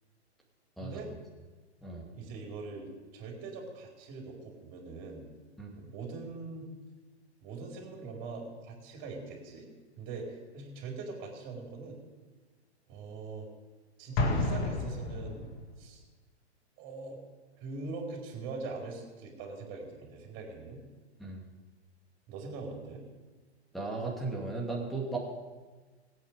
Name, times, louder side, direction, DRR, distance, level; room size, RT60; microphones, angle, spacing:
voice 1, 2.1-5.2 5.7-6.7 7.4-9.7 10.0-12.0 12.9-13.5 14.0-15.5 15.8-16.0 16.8-17.2 17.6-20.8 22.3-23.0, right 3 dB, 35° right, 0 dB, 4.1 m, -42 dB
Explosion, 14.2-15.7, left 2 dB, 35° left, 2.0 m, -31 dB
voice 2, 23.7-25.2, right 3 dB, ahead, -4 dB, 2.4 m, -36 dB
21.0 x 8.7 x 5.1 m, 1.3 s
figure-of-eight pair, 105°, 34 cm